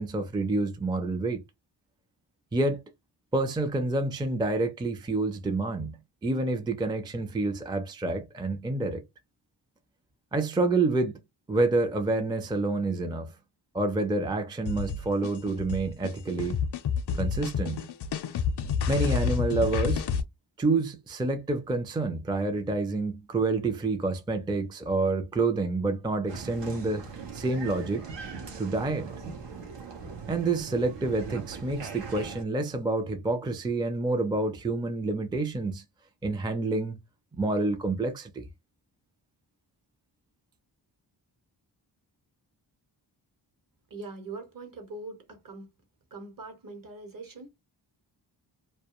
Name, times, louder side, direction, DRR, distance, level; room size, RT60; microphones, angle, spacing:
voice 1, 0.0-1.4 2.5-2.8 3.3-9.0 10.3-11.2 11.5-13.3 13.7-16.6 17.1-17.9 18.9-20.1 20.6-27.1 27.3-28.1 28.6-29.1 30.3-35.8 36.2-37.0 37.3-38.5, right 2 dB, 10° right, 0.4 m, -28 dB
sound 1, 14.7-20.2, left 6 dB, 65° left, 0.5 m, -29 dB
Applause, 26.3-32.4, right 5 dB, 85° right, 0.8 m, -40 dB
voice 2, 43.9-45.7 46.1-47.5, right 3 dB, 50° right, 1.0 m, -42 dB
2.2 x 2.2 x 2.8 m
wide cardioid pair, 100°, 43 cm